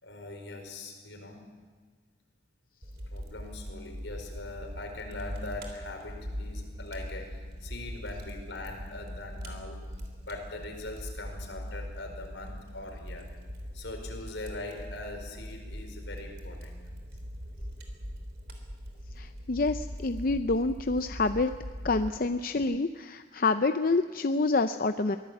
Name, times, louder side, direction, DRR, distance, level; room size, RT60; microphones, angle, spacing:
voice 1, 0.0-1.4 3.1-9.9 10.2-13.3 13.7-16.8 17.6-17.7, left 2 dB, 85° left, 3 dB, 4.8 m, -42 dB
Fire, 2.8-22.1, equal, 60° right, 3.4 m, -41 dB
voice 2, 19.2-21.5 21.8-25.2, left 3 dB, 50° left, 9 dB, 0.6 m, -27 dB
23.5 x 16.5 x 8.5 m, 1.5 s
head